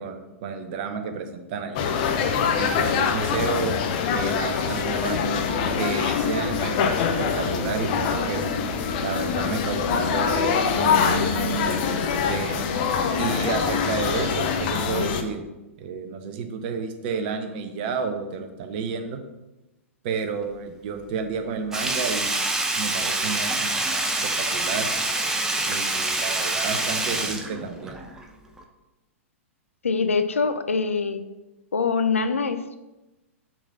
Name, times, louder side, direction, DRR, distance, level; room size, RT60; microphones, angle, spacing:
voice 1, 0.0-1.9 2.5-3.8 4.1-5.2 5.7-8.4 9.0-11.3 12.2-12.6 13.2-15.4 15.8-19.2 20.0-22.5 22.8-24.9 25.6-28.0, right 5 dB, 40° right, 6 dB, 1.0 m, -31 dB
sound 1, 1.8-15.2, left 6 dB, 40° left, 0.8 m, -24 dB
Sink (filling or washing), 21.7-28.2 28.6-28.7, right 2 dB, 5° right, 0.7 m, -26 dB
voice 2, 29.8-31.2 31.7-32.8, left 4 dB, 70° left, 9 dB, 0.6 m, -24 dB
5.9 x 4.1 x 5.7 m, 1.0 s
figure-of-eight pair, 105°, 7 cm